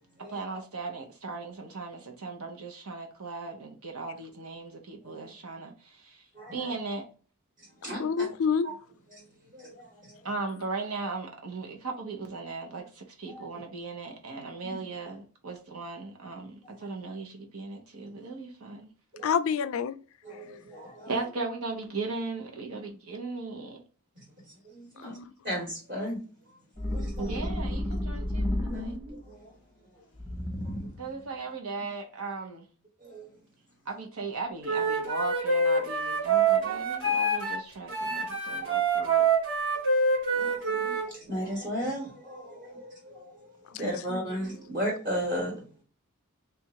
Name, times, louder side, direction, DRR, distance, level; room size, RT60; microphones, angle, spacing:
voice 1, 0.3-5.7 6.0-6.2 6.5-7.0 10.2-18.9 21.1-23.8 27.2-29.0 31.0-32.6 33.9-39.2, right 3 dB, 80° right, 1.0 m, -37 dB
voice 2, 6.3-6.7 7.8-8.3 8.6-8.7 9.1-9.2 9.5-10.2 13.3-13.6 14.7-14.8 16.8-16.9 19.1-19.3 20.2-21.3 24.2-24.3 24.6-25.2 25.4-26.2 26.8-27.4 28.2-29.5 30.0-30.1 33.0-33.3 40.3-43.4 43.7-45.8, equal, 40° right, 1.4 m, -36 dB
voice 3, 8.0-8.7 19.2-20.0 25.0-25.2 43.8-44.2, left 6 dB, 65° left, 0.4 m, -28 dB
sound 1, 26.8-29.2 30.2-31.1, left 1 dB, 5° right, 0.9 m, -32 dB
Wind instrument woodwind instrument, 34.6-37.6 37.9-41.1, right 3 dB, 55° right, 1.5 m, -26 dB
3.5 x 2.6 x 4.5 m
head